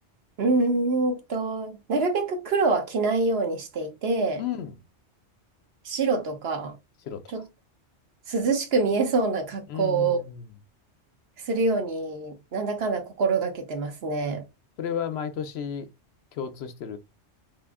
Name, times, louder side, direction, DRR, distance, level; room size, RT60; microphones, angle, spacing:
voice 1, 0.4-4.4 5.8-6.7 7.3-7.4 8.3-10.2 11.4-14.4, right 3 dB, 65° right, 1.0 m, -25 dB
voice 2, 4.4-4.7 7.0-7.2 9.7-10.5 14.8-15.9 16.3-17.0, left 8 dB, 70° left, 0.8 m, -32 dB
3.5 x 2.5 x 3.5 m
omnidirectional pair, 1.2 m